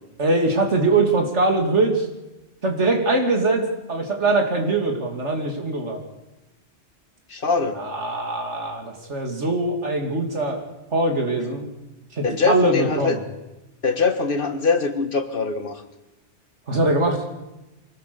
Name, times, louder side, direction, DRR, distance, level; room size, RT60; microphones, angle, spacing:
voice 1, 0.2-2.1 2.6-6.0 7.7-10.6 10.9-11.7 12.1-13.2 16.7-17.2, right 2 dB, 90° right, 3 dB, 3.1 m, -22 dB
voice 2, 7.3-7.8 12.2-13.2 13.8-15.8, left 4 dB, 50° left, 8 dB, 1.8 m, -22 dB
24.5 x 17.5 x 7.0 m, 1.0 s
omnidirectional pair, 1.2 m